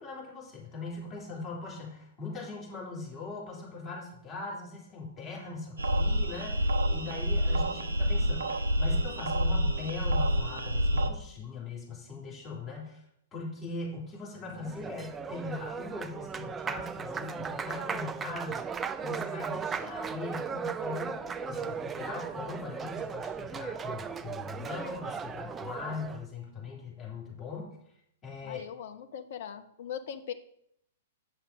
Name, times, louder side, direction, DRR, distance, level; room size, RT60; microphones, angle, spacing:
voice 1, 0.0-13.0 13.3-18.7 19.0-27.8 28.2-28.7, left 3 dB, 20° left, -4 dB, 3.7 m, -40 dB
sound 1, 5.8-11.1, equal, 70° right, 0.8 m, -28 dB
Applause, 14.4-26.2, right 6 dB, 15° right, 0.4 m, -37 dB
voice 2, 28.4-30.3, left 9 dB, 50° left, 8 dB, 0.9 m, -40 dB
9.0 x 6.0 x 5.0 m, 0.74 s
figure-of-eight pair, 110°, 0 cm